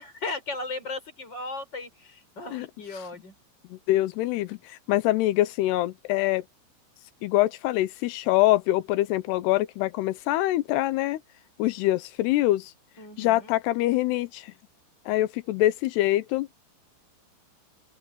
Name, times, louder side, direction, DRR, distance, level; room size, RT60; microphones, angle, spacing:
voice 1, 0.0-3.3 13.0-13.5, left 3 dB, 25° left, 6.1 m, -36 dB
voice 2, 3.7-4.6 4.9-6.4 7.2-11.2 11.6-12.7 13.2-14.5 15.1-16.5, left 16 dB, 80° left, 2.5 m, -24 dB
open air
omnidirectional pair, 5.4 m